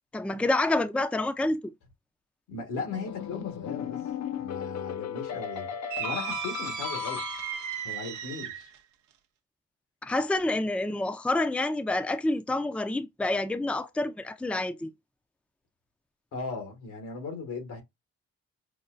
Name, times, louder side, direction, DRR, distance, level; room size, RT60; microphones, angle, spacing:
voice 1, 0.1-1.7 10.0-14.9, left 2 dB, 5° left, 0.5 m, -28 dB
voice 2, 2.5-4.0 4.4-5.7 6.0-7.2 7.8-8.7 16.3-17.8, left 4 dB, 85° left, 1.5 m, -37 dB
sound 1, 2.9-7.8, left 8 dB, 60° left, 0.6 m, -36 dB
sound 2, 5.9-8.8, right 10 dB, 75° right, 0.6 m, -36 dB
5.6 x 2.2 x 2.5 m
supercardioid pair, 50°, 30 cm